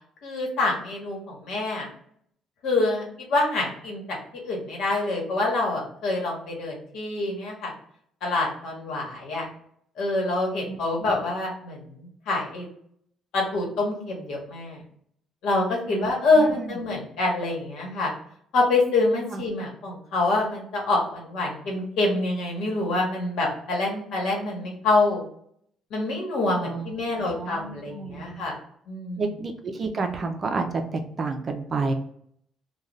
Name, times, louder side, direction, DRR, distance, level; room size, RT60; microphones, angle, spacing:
voice 1, 0.2-1.9 2.6-4.2 4.4-7.7 8.2-9.4 10.0-12.7 13.3-14.8 15.4-18.1 18.5-25.2 25.9-28.6 28.9-29.3, left 2 dB, 75° left, -1 dB, 1.2 m, -26 dB
voice 2, 10.7-11.1 15.9-16.8 19.3-19.4 26.6-26.9 27.2-28.4 29.2-31.9, right 3 dB, 35° right, 5 dB, 0.5 m, -30 dB
2.5 x 2.3 x 3.1 m, 0.66 s
cardioid pair, 120°, 0 cm